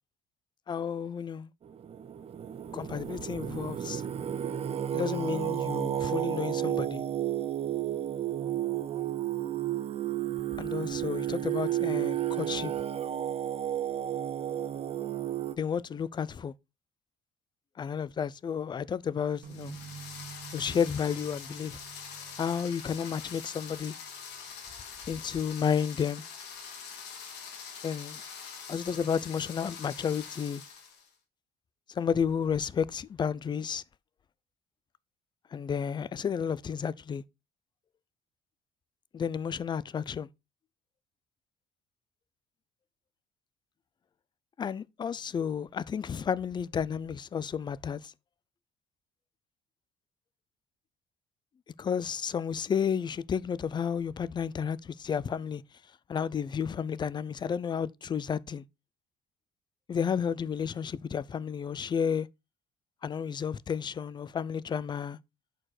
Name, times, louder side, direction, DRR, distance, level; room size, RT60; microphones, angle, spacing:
voice 1, 0.7-1.5 2.7-4.0 4.9-7.0 10.6-12.7 15.6-16.5 17.8-19.8 20.5-21.8 22.4-23.9 25.1-26.2 27.8-28.2 28.7-30.6 31.9-33.8 35.5-37.2 39.1-40.3 44.6-48.1 51.8-55.6 56.1-58.6 59.9-62.3 63.0-65.2, left 7 dB, 25° left, 0.3 m, -32 dB
Singing, 1.7-15.5, right 11 dB, 35° right, 0.6 m, -32 dB
sound 1, 19.4-31.1, left 6 dB, 80° left, 1.8 m, -44 dB
sound 2, 19.4-25.0, right 6 dB, 70° right, 1.5 m, -49 dB
6.3 x 4.5 x 4.2 m
cardioid pair, 110°, 17 cm